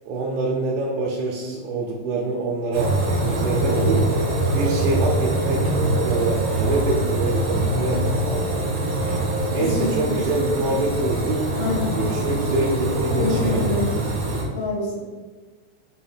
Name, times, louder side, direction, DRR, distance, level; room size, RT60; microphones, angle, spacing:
voice 1, 0.1-4.0 4.5-8.6 9.5-11.5 12.0-13.6, right 3 dB, 80° right, -4 dB, 3.0 m, -25 dB
sound 1, 2.7-14.4, right 1 dB, 60° right, 1.5 m, -23 dB
voice 2, 9.6-10.2 10.6-10.7 11.6-12.0 13.1-13.9 14.5-15.0, left 2 dB, 75° left, -7 dB, 1.5 m, -26 dB
7.3 x 2.6 x 5.7 m, 1.3 s
omnidirectional pair, 5.5 m